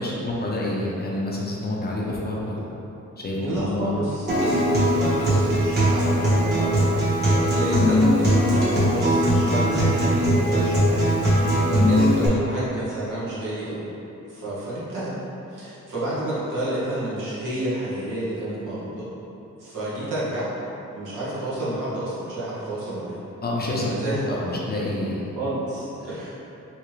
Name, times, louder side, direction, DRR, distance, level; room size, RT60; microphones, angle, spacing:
voice 1, 0.0-2.7 3.2-3.9 11.7-11.9 23.4-25.2 26.0-26.3, left 1 dB, 30° left, -4 dB, 0.6 m, -28 dB
voice 2, 3.4-13.9 14.3-15.2 15.5-19.1 19.6-20.5 20.9-23.2 23.8-24.4 24.8-24.9 25.4-26.3, right 1 dB, 80° right, -10 dB, 1.3 m, -30 dB
Acoustic guitar, 4.3-12.3, equal, 35° right, 1.2 m, -20 dB
3.3 x 2.8 x 3.1 m, 3.0 s
cardioid pair, 105°, 31 cm